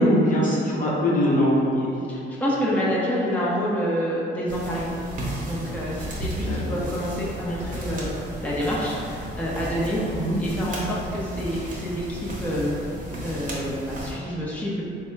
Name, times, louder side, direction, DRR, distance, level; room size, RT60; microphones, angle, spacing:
voice 1, 0.0-1.9 6.4-6.8 10.0-10.4, equal, 40° left, -6 dB, 0.9 m, -22 dB
voice 2, 2.1-5.0 5.5-8.1 8.4-10.0 10.4-12.7 13.2-14.8, equal, 10° left, -7 dB, 0.8 m, -27 dB
sound 1, 4.5-14.1, equal, 40° right, 1.0 m, -34 dB
3.6 x 2.3 x 4.4 m, 2.6 s
cardioid pair, 90°, 20 cm